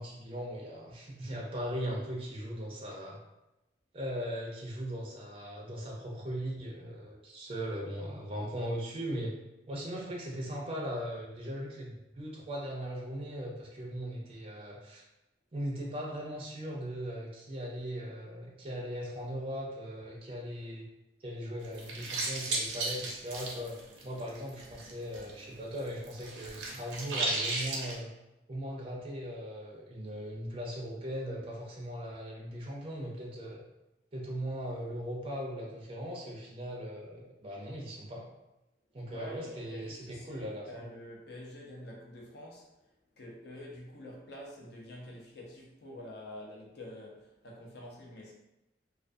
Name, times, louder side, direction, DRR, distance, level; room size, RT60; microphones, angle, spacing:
voice 1, 0.0-3.2 3.9-9.4 9.7-15.0 15.5-20.9 21.2-28.1 28.5-33.6 34.1-38.3 38.9-40.9, equal, 30° right, -2 dB, 0.4 m, -39 dB
sound 1, 21.6-25.3 25.6-28.0, right 2 dB, 90° right, 0.6 m, -35 dB
voice 2, 39.1-42.7 43.2-48.3, left 1 dB, 60° left, -2 dB, 0.6 m, -47 dB
2.3 x 2.3 x 2.5 m, 0.96 s
head